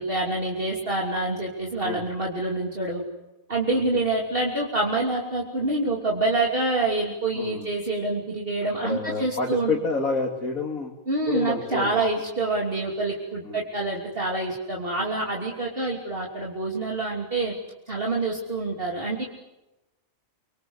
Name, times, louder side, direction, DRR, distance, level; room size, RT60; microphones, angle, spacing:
voice 1, 0.0-3.0 3.5-9.7 11.1-17.5 17.9-19.2, right 2 dB, 40° right, -1 dB, 3.3 m, -26 dB
voice 2, 7.3-7.7 8.8-10.9 11.3-11.9 13.4-13.6, left 3 dB, 80° left, 0 dB, 3.0 m, -28 dB
25.0 x 24.0 x 8.1 m, 0.99 s
omnidirectional pair, 1.5 m